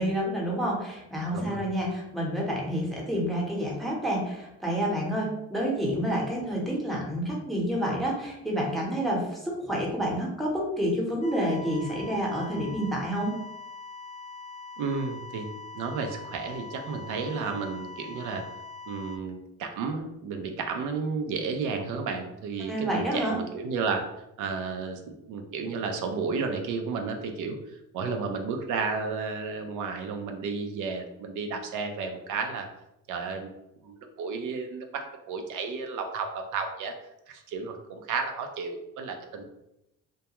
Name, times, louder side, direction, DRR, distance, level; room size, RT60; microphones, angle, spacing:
voice 1, 0.0-13.3 22.7-23.4, equal, ahead, -3 dB, 0.8 m, -29 dB
voice 2, 1.3-1.7 14.8-15.5 15.7-18.4 18.9-24.0 24.4-32.7 33.1-33.5 33.8-36.9 37.3-39.4, right 4 dB, 80° right, 4 dB, 0.5 m, -32 dB
sound 1, 11.2-19.2, left 4 dB, 25° left, 0.3 m, -43 dB
2.2 x 2.2 x 2.8 m, 0.86 s
cardioid pair, 90°, 30 cm